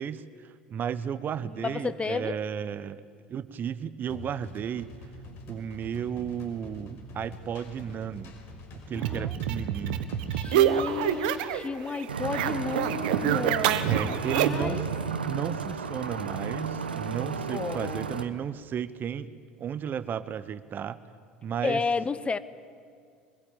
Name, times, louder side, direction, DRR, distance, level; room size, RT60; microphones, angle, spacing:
voice 1, 0.0-3.0 3.3-4.9 5.5-8.3 8.7-10.1 13.9-14.8 15.2-19.3 19.6-21.0 21.4-21.8, right 8 dB, 40° right, 14 dB, 1.0 m, -34 dB
voice 2, 1.4-2.4 8.9-9.4 10.2-14.0 14.3-14.8 17.5-18.2 21.6-22.4, left 4 dB, 20° left, 15 dB, 1.1 m, -32 dB
sound 1, 4.1-11.5, left 3 dB, 55° left, 5.6 m, -46 dB
sound 2, 9.0-11.7 11.9-14.7, right 10 dB, 70° right, 1.4 m, -27 dB
sound 3, 12.1-18.3, right 6 dB, 90° right, 1.2 m, -33 dB
23.5 x 21.0 x 8.9 m, 2.2 s
hypercardioid pair, 70°, 5 cm